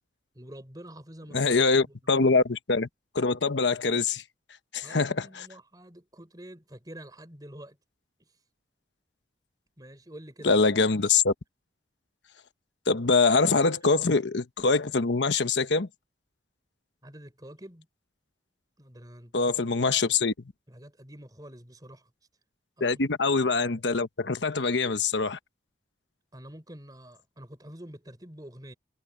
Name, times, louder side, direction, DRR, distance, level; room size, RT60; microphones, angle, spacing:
voice 1, 0.3-1.6 1.9-2.1 4.8-7.8 8.2-8.3 9.8-10.6 17.0-17.9 18.8-19.8 20.7-22.1 22.8-23.1 26.3-28.7, right 1 dB, 20° right, 4.2 m, -47 dB
voice 2, 1.3-2.9 3.1-4.2 4.7-5.5 10.4-11.3 12.9-15.9 19.3-20.3 22.8-25.4, left 4 dB, 85° left, 1.1 m, -24 dB
head